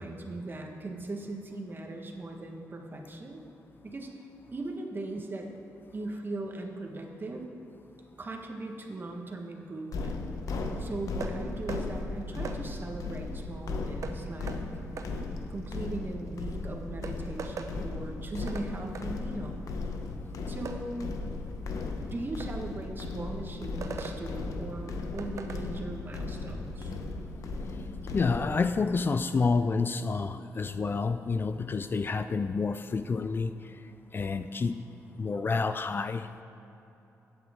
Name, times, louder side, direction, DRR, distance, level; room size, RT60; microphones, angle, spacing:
voice 1, 0.0-3.4 3.8-4.3 4.5-5.5 5.9-7.4 8.2-10.2 10.8-14.6 15.5-19.6 20.5-21.1 22.1-26.9, right 2 dB, 35° right, 2 dB, 1.4 m, -39 dB
sound 1, 9.9-28.5, left 3 dB, 70° left, 0.9 m, -36 dB
sound 2, 11.2-11.4 11.7-11.8 12.4-12.6 14.0-14.2 14.5-14.6 15.0-15.1 16.5-16.6 17.0-17.7 18.5-18.7 18.9-19.1 20.6-20.8 22.4-22.5 23.8-24.2 25.2-25.6, right 5 dB, 60° right, 0.8 m, -39 dB
voice 2, 28.1-33.5 34.1-34.8 35.2-36.4, left 4 dB, 35° left, 10 dB, 0.4 m, -29 dB
15.0 x 8.6 x 3.7 m, 3.0 s
cardioid pair, 70°, 6 cm